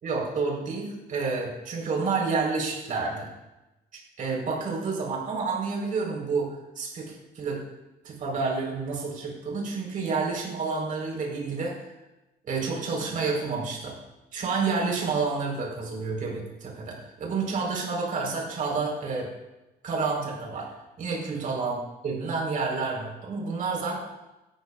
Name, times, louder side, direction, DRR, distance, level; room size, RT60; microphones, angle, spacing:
voice 1, 0.0-3.3 4.2-7.6 8.0-11.8 12.5-13.9 14.3-19.3 19.8-21.8 22.0-24.0, right 4 dB, 50° right, -2 dB, 4.3 m, -29 dB
17.5 x 14.0 x 2.5 m, 1.0 s
cardioid pair, 110°, 17 cm